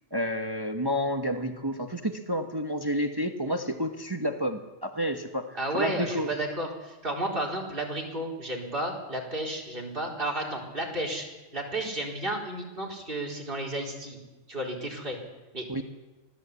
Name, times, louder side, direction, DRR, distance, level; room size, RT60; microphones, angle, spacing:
voice 1, 0.1-6.3 15.7-15.8, equal, 20° right, 6 dB, 1.3 m, -30 dB
voice 2, 5.5-11.3 11.5-14.2 14.5-15.2 15.5-15.6, right 1 dB, 45° right, -1 dB, 4.4 m, -32 dB
24.5 x 17.0 x 8.4 m, 1.2 s
omnidirectional pair, 1.3 m